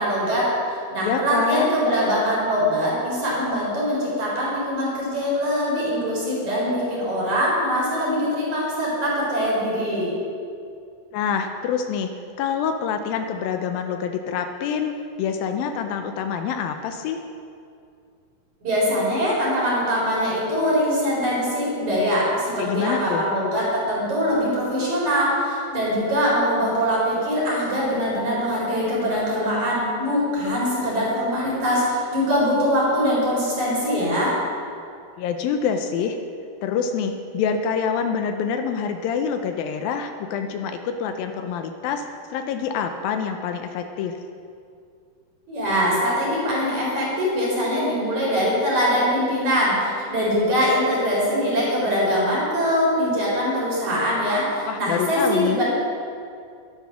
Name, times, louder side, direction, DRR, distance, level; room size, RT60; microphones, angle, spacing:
voice 1, 0.0-10.1 18.6-34.3 45.5-55.6, equal, 50° right, -6 dB, 5.8 m, -22 dB
voice 2, 1.0-1.8 11.1-12.1 12.4-14.9 15.2-17.2 22.6-23.3 35.2-36.2 36.6-42.1 42.3-44.1 54.7-55.6, left 7 dB, 80° left, 6 dB, 2.4 m, -26 dB
12.5 x 12.0 x 6.2 m, 2.4 s
omnidirectional pair, 4.4 m